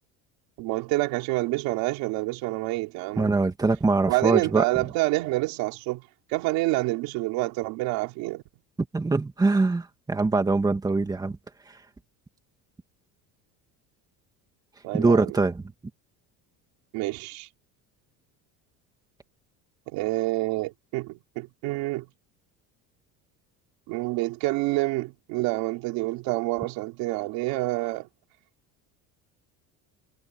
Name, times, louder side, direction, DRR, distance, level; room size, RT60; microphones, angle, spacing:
voice 1, 0.6-3.3 4.0-6.0 6.3-8.4 14.8-15.4 16.9-17.5 19.9-22.1 23.9-28.1, right 21 dB, 70° right, 3.6 m, -27 dB
voice 2, 3.2-4.6 8.9-11.4 14.9-15.6, right 3 dB, 10° right, 2.2 m, -23 dB
cardioid pair, 160°, 36 cm